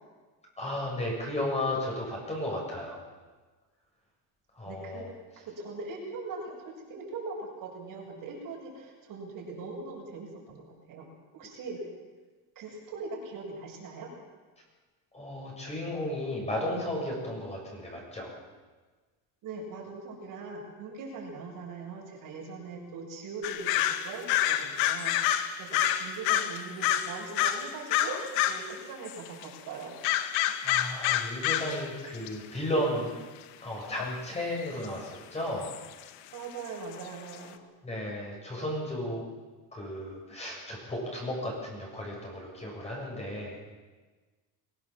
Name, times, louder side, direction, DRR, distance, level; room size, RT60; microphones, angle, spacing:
voice 1, 0.6-3.0 4.6-5.1 15.1-18.3 30.6-33.1 33.6-35.7 37.8-39.2 39.7-43.6, left 1 dB, 15° left, -2 dB, 7.8 m, -34 dB
voice 2, 4.6-5.1 5.4-11.1 11.3-11.8 12.6-14.1 19.4-29.9 36.3-37.6, right 3 dB, 50° right, -2 dB, 7.5 m, -41 dB
sound 1, 23.4-28.7 29.0-29.4 30.0-31.9 32.1-32.3 33.9-34.1 34.8-34.9 35.6-35.9 36.6-36.7 37.0-37.1 37.3-37.4, left 11 dB, 80° left, 1.6 m, -28 dB
23.5 x 17.5 x 7.6 m, 1.3 s
cardioid pair, 140°, 42 cm